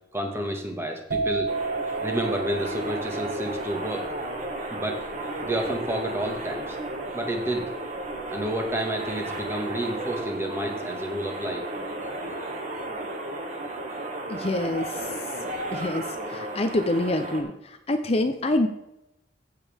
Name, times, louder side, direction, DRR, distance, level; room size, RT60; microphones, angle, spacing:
voice 1, 0.1-1.5 2.0-4.1 4.7-5.0 5.4-6.8 7.1-7.7 8.3-11.7, right 1 dB, 15° right, 3 dB, 1.7 m, -30 dB
sound 1, 1.1-8.7 9.0-9.4, right 4 dB, 60° right, 1.3 m, -34 dB
sound 2, 1.5-17.4, right 1 dB, 45° right, 1.8 m, -33 dB
voice 2, 14.3-15.1 15.7-18.7, left 1 dB, 35° left, 7 dB, 0.7 m, -26 dB
15.5 x 7.5 x 3.6 m, 0.87 s
head